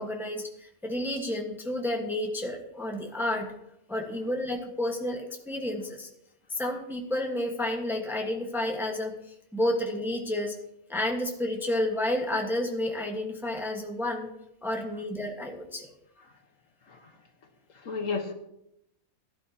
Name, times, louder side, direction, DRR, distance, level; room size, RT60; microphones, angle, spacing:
voice 1, 0.0-3.5 3.9-6.1 6.5-10.6 10.9-14.3 14.6-15.9, left 1 dB, ahead, 1 dB, 1.2 m, -31 dB
voice 2, 16.9-17.2 17.7-18.3, left 4 dB, 65° left, 5 dB, 1.6 m, -33 dB
16.5 x 12.0 x 2.8 m, 0.82 s
omnidirectional pair, 1.5 m